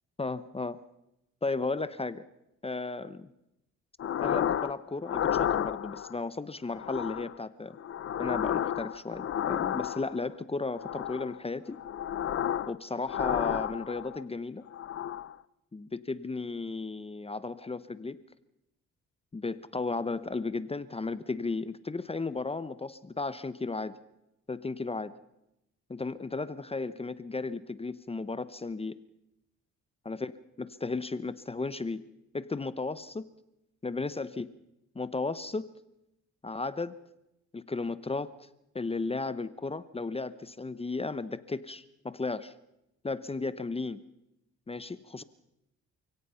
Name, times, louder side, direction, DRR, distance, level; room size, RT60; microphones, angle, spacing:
voice 1, 0.2-0.8 1.4-2.2 2.6-3.3 4.2-7.8 8.2-11.8 12.7-14.6 15.7-18.2 19.3-24.0 24.5-25.1 25.9-28.9 30.0-30.3 30.6-32.1 32.3-33.3 33.8-34.5 34.9-35.7 36.4-37.0 37.5-38.3 38.7-42.5 43.0-44.0 44.7-45.2, left 3 dB, 20° left, 15 dB, 0.9 m, -34 dB
sound 1, 4.0-4.7 5.1-6.1 6.7-7.4 7.8-10.2 10.7-11.4 11.7-12.8 13.0-14.2 14.7-15.4, left 10 dB, 50° left, 0.7 m, -32 dB
29.0 x 17.0 x 5.7 m, 0.86 s
cardioid pair, 90°, 30 cm